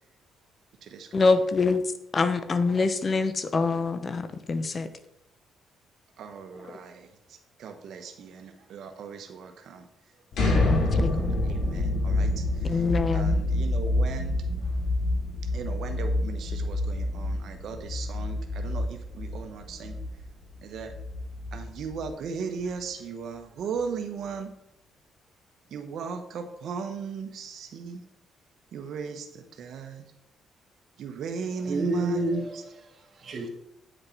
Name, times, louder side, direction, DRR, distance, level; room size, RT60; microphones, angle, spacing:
voice 1, 1.1-1.8 2.1-4.9 6.7-6.8 10.6-11.2 12.6-13.4, left 4 dB, 40° left, 0.9 m, -25 dB
voice 2, 6.2-9.9 10.4-11.0 11.5-12.8 13.1-14.4 15.5-20.0 20.6-20.9 21.5-24.5 25.7-28.0 28.7-30.0 31.0-32.2 32.5-32.6, right 5 dB, 70° right, 1.1 m, -37 dB
sound 1, 10.3-22.1, left 2 dB, 70° left, 2.8 m, -27 dB
voice 3, 31.6-33.5, right 2 dB, 50° right, 2.0 m, -30 dB
9.3 x 6.6 x 4.5 m
cardioid pair, 90°, 0 cm